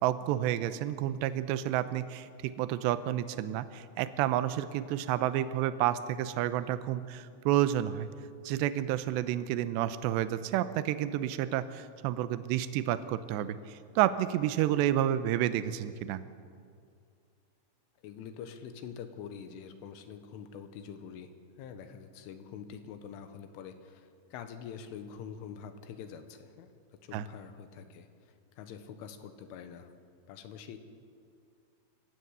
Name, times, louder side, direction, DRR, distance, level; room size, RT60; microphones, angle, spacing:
voice 1, 0.0-8.1 8.4-16.2 27.1-27.3, right 12 dB, 80° right, 13 dB, 2.7 m, -30 dB
voice 2, 18.0-21.3 21.6-26.7 27.0-28.1 28.6-29.9 30.3-30.8, left 7 dB, 80° left, 8 dB, 3.7 m, -45 dB
26.0 x 15.5 x 8.1 m, 2.3 s
omnidirectional pair, 5.6 m